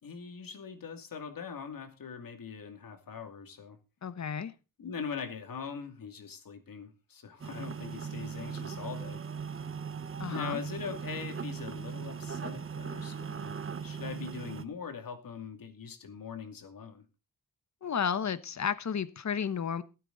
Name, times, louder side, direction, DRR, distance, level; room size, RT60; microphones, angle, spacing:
voice 1, 0.0-3.8 4.8-9.2 10.3-13.5 13.8-17.0, left 6 dB, 70° left, 7 dB, 2.5 m, -42 dB
voice 2, 4.0-4.5 10.2-10.6 17.8-19.8, left 7 dB, 50° left, 14 dB, 1.1 m, -32 dB
sound 1, 7.4-14.6, right 6 dB, 35° right, 0.9 m, -39 dB
16.5 x 9.2 x 3.9 m, 0.31 s
wide cardioid pair, 130°, 35 cm